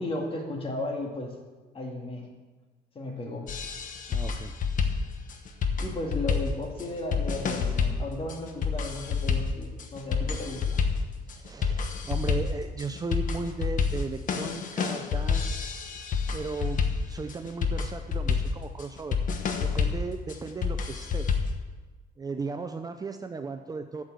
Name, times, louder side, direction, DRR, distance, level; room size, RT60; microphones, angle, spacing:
voice 1, 0.0-1.3 1.7-2.3 2.9-3.5 5.8-10.8, left 2 dB, 35° left, 1 dB, 2.3 m, -34 dB
sound 1, 3.5-21.6, left 5 dB, 50° left, 1.1 m, -29 dB
voice 2, 4.1-4.5 11.3-15.8 16.3-19.2 19.6-21.3 22.2-24.0, right 4 dB, 20° right, 7 dB, 0.6 m, -36 dB
8.4 x 6.7 x 8.0 m, 1.3 s
cardioid pair, 110°, 17 cm